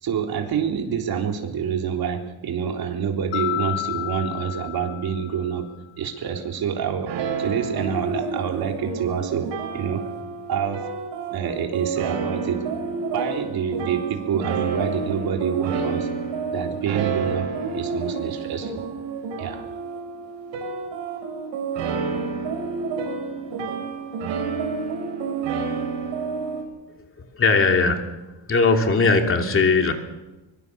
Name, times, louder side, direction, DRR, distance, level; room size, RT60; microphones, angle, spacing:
voice 1, 0.0-5.7 6.0-10.1 10.5-10.8 11.3-12.6 13.1-16.1 16.5-18.8 19.4-19.7, right 7 dB, 55° right, 3 dB, 3.7 m, -27 dB
Mallet percussion, 3.3-5.7, left 19 dB, 85° left, 1.1 m, -31 dB
sound 1, 7.1-26.6, right 5 dB, 80° right, 6.8 m, -29 dB
voice 2, 27.2-29.9, left 4 dB, 30° left, 4 dB, 2.9 m, -20 dB
24.0 x 23.0 x 7.0 m, 1.1 s
cardioid pair, 140°, 44 cm